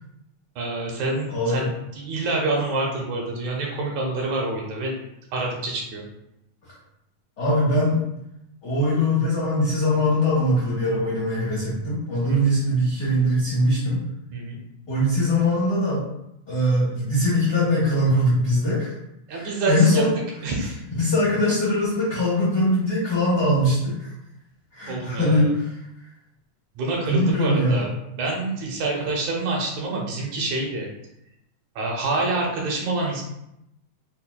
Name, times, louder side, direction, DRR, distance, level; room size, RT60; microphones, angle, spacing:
voice 1, 0.6-1.7 2.0-4.9 5.3-6.1 12.3-12.6 14.3-14.6 19.3-20.0 20.4-20.8 24.9-25.5 26.8-30.9 31.8-33.2, right 2 dB, 75° right, -1 dB, 2.0 m, -27 dB
voice 2, 1.3-1.7 7.4-8.0 8.6-14.0 14.9-16.0 16.5-18.9 19.3-20.1 21.0-23.9 24.7-25.7 27.1-27.9, left 1 dB, 70° left, -9 dB, 0.9 m, -21 dB
5.6 x 2.1 x 2.2 m, 0.83 s
omnidirectional pair, 3.4 m